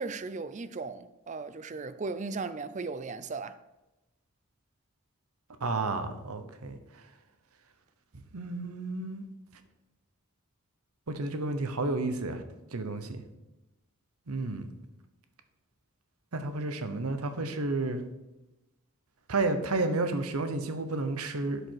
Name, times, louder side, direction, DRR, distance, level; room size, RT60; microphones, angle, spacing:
voice 1, 0.0-3.6, right 4 dB, 35° right, 0.4 m, -36 dB
voice 2, 5.6-6.8 8.3-9.2 11.1-12.4 12.7-13.2 14.3-14.6 16.3-18.0 19.3-21.6, right 2 dB, 85° right, 1.0 m, -31 dB
11.5 x 5.1 x 4.7 m
head